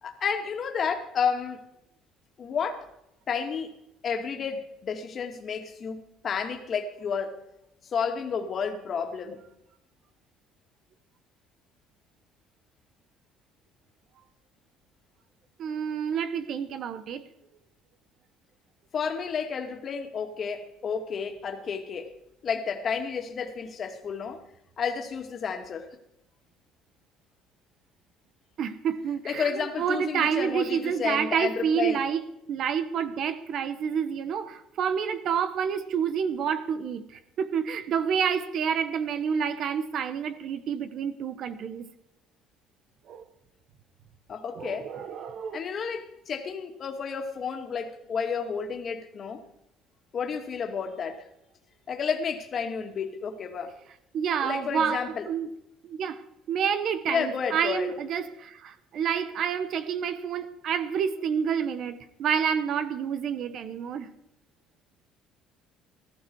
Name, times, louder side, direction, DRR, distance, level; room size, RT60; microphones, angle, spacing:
voice 1, 0.0-1.6 2.4-2.9 3.3-3.7 4.0-7.4 7.8-9.4 18.9-22.1 22.4-24.4 24.8-26.0 29.2-32.0 44.3-44.9 45.5-49.4 50.1-51.3 51.9-53.8 54.4-55.3 57.1-57.9, left 6 dB, 40° left, 2.3 m, -31 dB
voice 2, 15.6-17.2 28.6-32.2 32.5-41.9 43.1-43.2 44.5-45.7 54.1-55.5 55.8-64.1, right 7 dB, 55° right, 1.2 m, -29 dB
19.0 x 13.5 x 4.8 m
cardioid pair, 130°, 0 cm